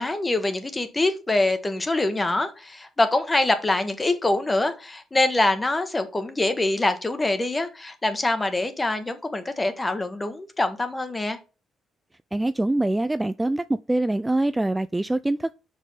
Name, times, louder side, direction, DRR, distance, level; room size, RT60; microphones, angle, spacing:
voice 1, 0.0-11.4, left 2 dB, 20° left, 1.6 m, -24 dB
voice 2, 12.3-15.5, right 2 dB, 10° right, 0.4 m, -24 dB
6.3 x 5.4 x 5.7 m
cardioid pair, 90°, 0 cm